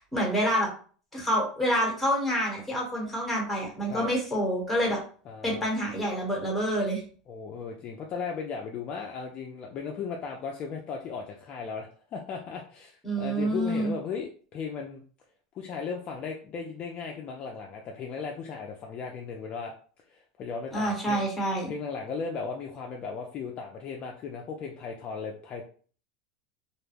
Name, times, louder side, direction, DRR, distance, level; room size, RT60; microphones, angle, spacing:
voice 1, 0.1-0.7 1.1-5.0 5.4-7.0 13.0-13.9 20.7-21.7, equal, 5° left, -2 dB, 1.0 m, -27 dB
voice 2, 5.3-5.7 7.3-15.0 15.5-19.7 20.1-21.2 21.7-25.6, left 5 dB, 35° left, 1 dB, 0.4 m, -36 dB
2.3 x 2.1 x 3.3 m, 0.43 s
supercardioid pair, 140°, 3 cm